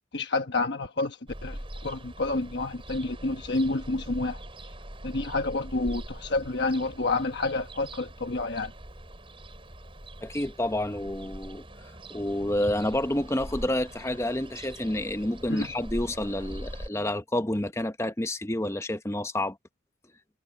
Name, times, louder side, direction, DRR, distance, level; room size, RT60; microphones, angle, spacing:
voice 1, 0.1-4.4 5.0-8.7 15.5-15.7, left 2 dB, 55° left, 1.2 m, -29 dB
Ocean, 1.3-16.9, right 1 dB, 25° right, 7.1 m, -42 dB
voice 2, 10.2-11.6 12.1-19.6, left 1 dB, 15° left, 0.8 m, -29 dB
head